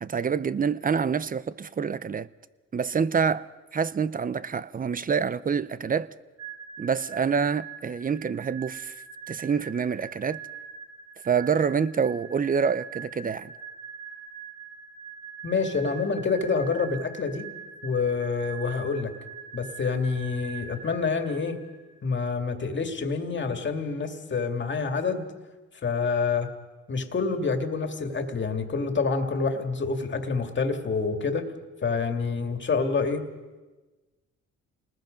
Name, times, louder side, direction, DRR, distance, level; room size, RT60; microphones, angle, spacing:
voice 1, 0.0-2.3 2.7-3.5 3.7-6.1 6.8-8.9 9.3-10.4 11.2-13.5, right 6 dB, 30° right, 0.6 m, -26 dB
sound 1, 6.4-22.0, right 6 dB, 60° right, 4.9 m, -43 dB
voice 2, 15.4-17.4 17.8-19.1 19.5-21.6 22.0-25.3 25.8-26.5 26.9-31.5 31.8-33.2, left 4 dB, 40° left, 2.3 m, -27 dB
28.0 x 20.0 x 5.2 m
cardioid pair, 90°, 30 cm